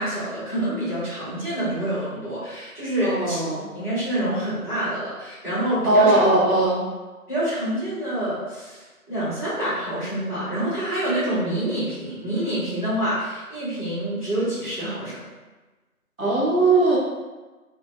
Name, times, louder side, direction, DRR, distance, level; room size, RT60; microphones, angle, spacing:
voice 1, 0.0-3.4 3.7-6.2 7.3-15.3, right 1 dB, 35° left, -11 dB, 1.2 m, -27 dB
voice 2, 3.0-3.7 5.9-6.8 16.2-17.0, right 2 dB, 65° right, -5 dB, 0.8 m, -19 dB
2.6 x 2.0 x 2.3 m, 1.2 s
figure-of-eight pair, 180°, 45 cm